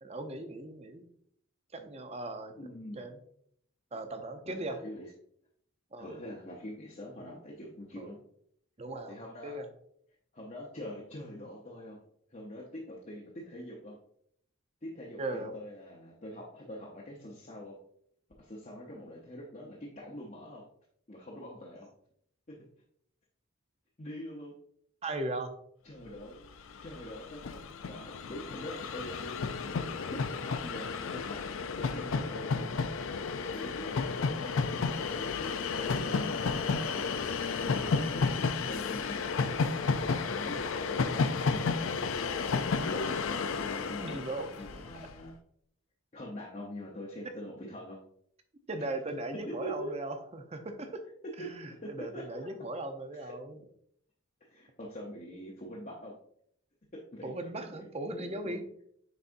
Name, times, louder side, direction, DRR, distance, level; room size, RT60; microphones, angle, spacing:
voice 1, 0.0-1.0 1.7-2.5 2.9-3.2 3.9-4.8 5.9-6.2 8.0-8.2 8.8-9.7 15.2-15.6 25.0-25.6 44.0-44.6 44.9-45.1 47.2-47.3 48.7-51.0 51.4-53.6 57.2-58.6, right 2 dB, 30° right, 7 dB, 0.6 m, -38 dB
voice 2, 2.5-3.0 4.5-5.1 6.0-8.2 9.1-9.6 10.3-12.0 12.3-14.0 14.8-17.8 18.4-20.7 21.1-21.9 22.5-22.6 24.0-24.6 25.8-26.4 26.8-29.3 30.1-31.4 31.7-32.7 33.5-37.1 37.6-39.2 39.6-42.0 42.6-45.3 46.1-48.0 49.5-50.0 51.4-51.5 51.8-52.5 53.1-53.3 54.4-56.2 57.1-57.3 57.7-57.8 58.2-58.6, equal, 35° left, -4 dB, 0.8 m, -44 dB
Train, 26.4-26.5 26.7-45.1, left 4 dB, 70° left, 0.5 m, -32 dB
9.4 x 4.1 x 2.6 m, 0.68 s
head